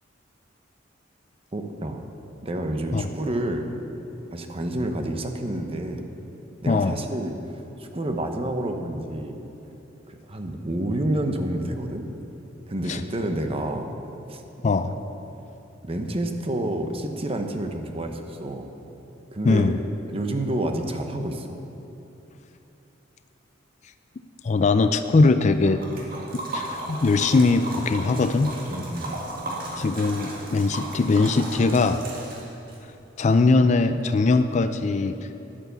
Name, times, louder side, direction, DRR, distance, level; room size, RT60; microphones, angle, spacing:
voice 1, 1.5-2.0 2.4-3.7 4.3-6.1 6.6-7.3 7.8-9.4 10.1-12.0 12.7-13.9 14.3-14.4 14.9-15.0 15.8-18.7 19.3-19.8 20.1-21.6 28.7-29.1, right 1 dB, 30° right, 5 dB, 0.9 m, -29 dB
voice 2, 6.7-7.0 12.9-13.0 14.6-15.0 19.4-19.8 24.4-25.8 26.5-28.5 29.8-32.0 33.2-35.2, left 3 dB, 35° left, 10 dB, 0.4 m, -21 dB
Liquid, 25.6-32.8, right 1 dB, 50° right, 2.1 m, -35 dB
10.5 x 9.2 x 6.9 m, 3.0 s
head